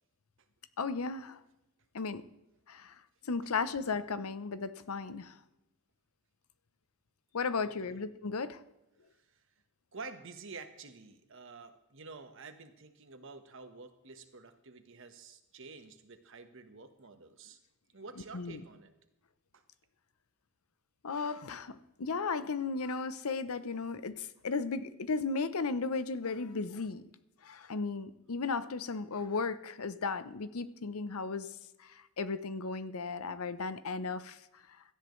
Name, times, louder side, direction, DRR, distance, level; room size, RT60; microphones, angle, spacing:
voice 1, 0.8-1.4 1.9-2.2 2.7-2.9 3.2-5.4 7.3-8.6 18.3-18.6 21.0-27.0 27.4-31.5 31.8-34.4, left 4 dB, 80° left, 14 dB, 0.7 m, -35 dB
voice 2, 7.6-8.0 9.3-9.4 9.9-17.6 17.9-18.9 19.5-19.6, right 4 dB, 60° right, 8 dB, 1.2 m, -49 dB
17.0 x 13.0 x 3.2 m, 0.93 s
head